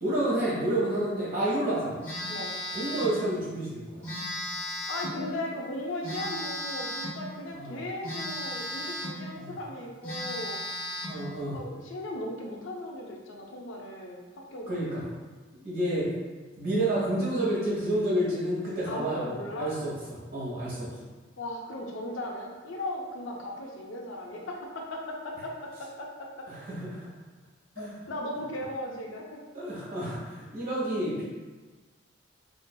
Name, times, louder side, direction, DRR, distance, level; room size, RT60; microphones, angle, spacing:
voice 1, 0.0-1.9 2.7-4.0 7.5-7.8 9.3-9.6 11.1-11.6 14.7-15.0 15.6-16.1 16.6-19.9 20.3-20.9 26.5-27.0 27.7-27.9 29.5-31.2, right 1 dB, 50° right, -7 dB, 1.4 m, -29 dB
Telephone, 2.0-3.2 4.0-5.2 6.0-7.2 8.0-9.2 9.7-9.8 10.0-11.2, left 1 dB, 10° left, 1.4 m, -35 dB
voice 2, 4.9-10.6 11.5-14.9 18.9-19.7 21.4-26.5 28.1-29.4, left 1 dB, 70° left, 0 dB, 0.5 m, -37 dB
4.4 x 2.6 x 2.2 m, 1.3 s
head